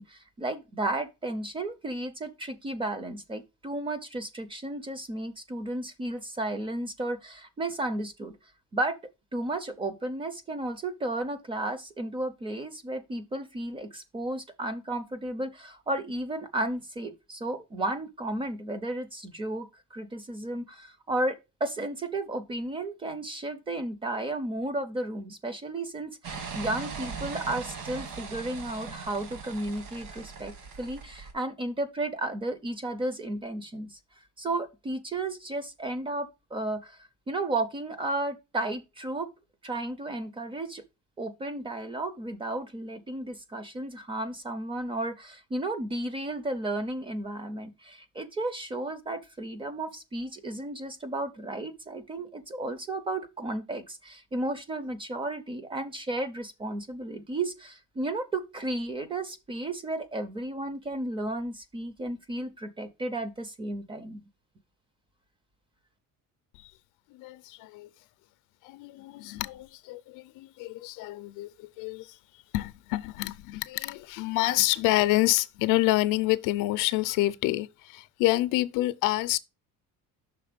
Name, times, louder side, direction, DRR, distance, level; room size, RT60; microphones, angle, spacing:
voice 1, 0.0-8.3 8.7-9.0 9.3-21.4 21.6-34.0 34.4-37.0 37.3-39.3 39.6-40.8 41.2-64.3, right 2 dB, 15° right, 0.4 m, -33 dB
sound 1, 26.2-31.3, right 5 dB, 65° right, 1.5 m, -40 dB
voice 2, 67.1-67.9 68.6-72.2 72.5-79.4, left 17 dB, 70° left, 0.5 m, -28 dB
5.8 x 3.9 x 5.0 m
cardioid pair, 175°, 33 cm